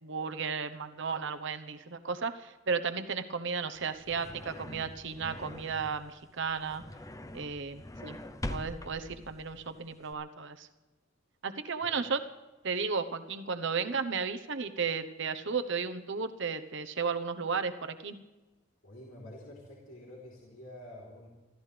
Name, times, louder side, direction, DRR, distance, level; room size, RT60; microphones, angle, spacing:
voice 1, 0.0-6.8 7.3-8.2 8.5-10.7 11.4-12.2 12.6-18.2, right 5 dB, 60° right, 9 dB, 1.0 m, -34 dB
sound 1, 3.8-10.1, left 1 dB, 15° left, 0.7 m, -44 dB
voice 2, 18.8-21.3, left 1 dB, 65° left, -4 dB, 3.8 m, -48 dB
26.0 x 14.0 x 3.4 m, 1.2 s
head